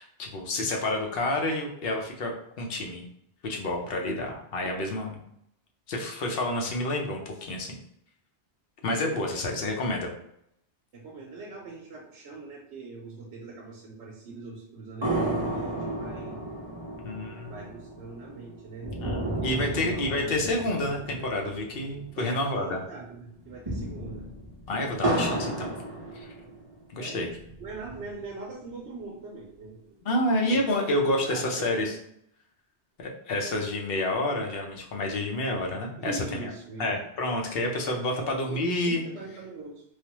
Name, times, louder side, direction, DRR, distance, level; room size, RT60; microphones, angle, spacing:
voice 1, 0.0-2.3 2.6-3.1 3.4-5.2 5.9-7.8 8.8-10.1 17.0-17.5 19.0-22.8 24.7-25.7 26.2-26.3 26.9-27.3 30.0-31.9 33.0-36.5 36.8-39.0, left 1 dB, 60° left, 1 dB, 0.8 m, -29 dB
voice 2, 3.8-4.2 9.2-9.6 10.9-16.4 17.5-19.0 19.7-20.2 22.2-24.3 27.0-27.2 27.6-30.6 31.0-32.0 36.0-36.9 38.2-39.8, right 3 dB, 75° right, -2 dB, 0.9 m, -42 dB
sound 1, 15.0-22.6 22.9-23.0 23.4-26.8 27.3-28.3, right 1 dB, 30° right, 0.6 m, -33 dB
3.2 x 2.1 x 2.9 m, 0.75 s
omnidirectional pair, 1.2 m